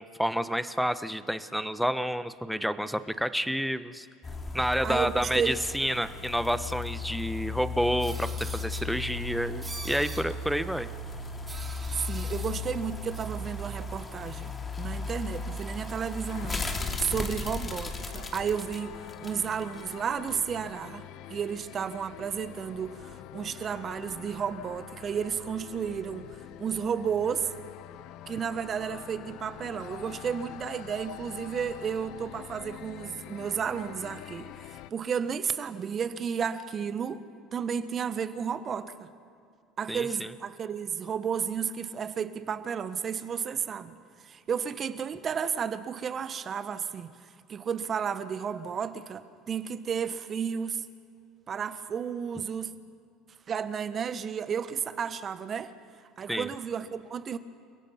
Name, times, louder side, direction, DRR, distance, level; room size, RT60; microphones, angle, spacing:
voice 1, 0.0-4.1 4.5-10.9 39.9-40.3 56.3-56.5, equal, ahead, 1.0 m, -29 dB
sound 1, 4.2-19.9 20.3-20.4, left 3 dB, 25° left, 2.5 m, -36 dB
voice 2, 4.8-5.5 11.9-21.0 21.3-27.5 28.3-37.2 37.5-39.1 39.8-50.9 51.5-52.7 53.5-55.7 56.2-57.4, right 7 dB, 40° right, 1.3 m, -32 dB
sound 2, 8.0-8.9 9.6-10.2 11.5-12.6 13.1-13.2, right 3 dB, 20° right, 3.0 m, -42 dB
sound 3, 16.3-34.9, left 13 dB, 65° left, 0.6 m, -45 dB
29.5 x 17.0 x 5.9 m
hypercardioid pair, 70°, 0 cm